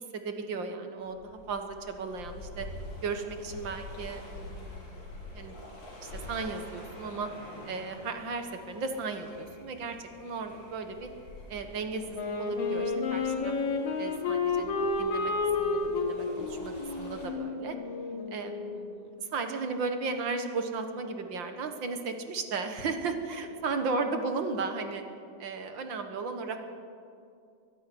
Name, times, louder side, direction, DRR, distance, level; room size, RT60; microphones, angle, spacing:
voice 1, 0.0-2.7 3.0-5.0 5.3-5.5 6.0-7.3 7.7-11.1 11.5-13.5 14.0-15.3 15.6-17.8 18.3-25.0 25.4-26.6, right 4 dB, 50° right, 6 dB, 1.5 m, -35 dB
sound 1, 1.0-17.3, left 1 dB, 50° left, 8.0 m, -46 dB
Wind instrument woodwind instrument, 12.1-18.7, left 4 dB, 80° left, 4.2 m, -31 dB
23.0 x 12.5 x 9.9 m, 2.5 s
omnidirectional pair, 3.9 m